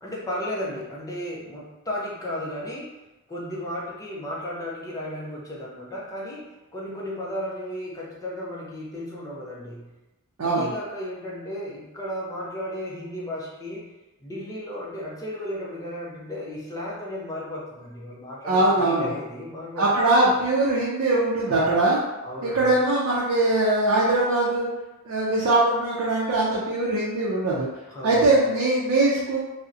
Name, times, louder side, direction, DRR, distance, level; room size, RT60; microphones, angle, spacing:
voice 1, 0.0-2.9 3.3-6.5 6.7-9.9 10.4-13.9 14.2-19.9 21.5-21.7 22.2-22.8 27.9-28.4, left 1 dB, 15° left, -5 dB, 0.4 m, -34 dB
voice 2, 10.4-10.7 18.4-19.1 19.8-22.0 22.4-24.7 25.1-27.7 28.0-29.4, right 2 dB, 65° right, -5 dB, 0.4 m, -21 dB
2.6 x 2.0 x 2.4 m, 1.1 s
head